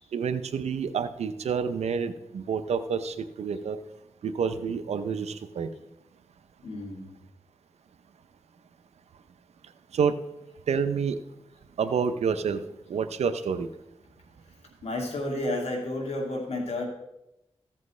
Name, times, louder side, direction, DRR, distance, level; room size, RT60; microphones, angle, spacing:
voice 1, 0.1-3.8 4.2-5.7 9.9-10.1 10.7-11.2 11.8-12.6 12.9-13.7, right 6 dB, 90° right, 11 dB, 0.6 m, -28 dB
voice 2, 6.6-7.2 14.8-16.9, left 1 dB, 75° left, 0 dB, 2.4 m, -31 dB
15.0 x 7.6 x 3.2 m, 0.88 s
cardioid pair, 50°, 11 cm